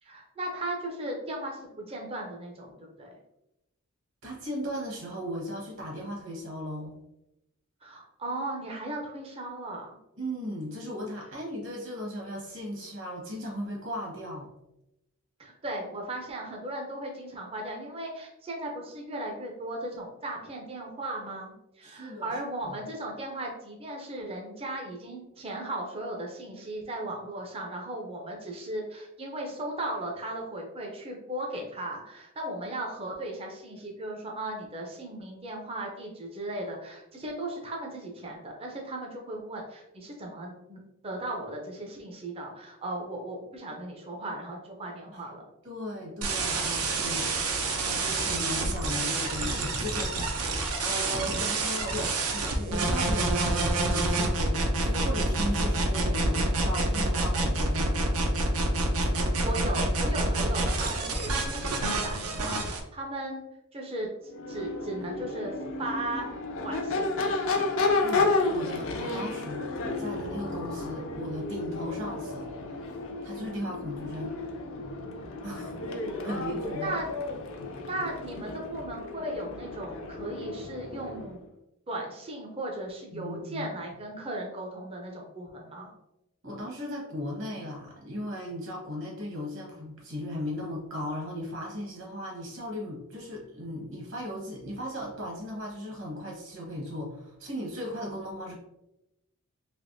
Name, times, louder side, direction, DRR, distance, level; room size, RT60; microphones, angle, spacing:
voice 1, 0.0-3.1 7.8-9.9 15.4-45.4 59.1-63.4 63.7-64.1 64.5-66.3 66.6-67.1 76.1-76.2 76.8-77.0 77.8-81.5 81.9-85.9, right 1 dB, 25° right, 0 dB, 0.5 m, -37 dB
voice 2, 4.2-7.0 10.2-14.5 21.8-22.3 22.6-22.8 45.1-45.2 45.6-47.3 47.7-58.0 67.7-69.7 70.0-72.4 73.2-74.3 75.4-75.7 76.2-77.0 83.1-83.7 86.4-98.6, equal, 60° right, -2 dB, 1.2 m, -37 dB
sound 1, 46.2-62.8, right 2 dB, 80° right, 0.6 m, -28 dB
Crowd / Race car auto racing / Accelerating revving vroom, 64.3-81.4, left 3 dB, 60° left, 0.5 m, -32 dB
3.4 x 2.9 x 2.6 m, 0.88 s
head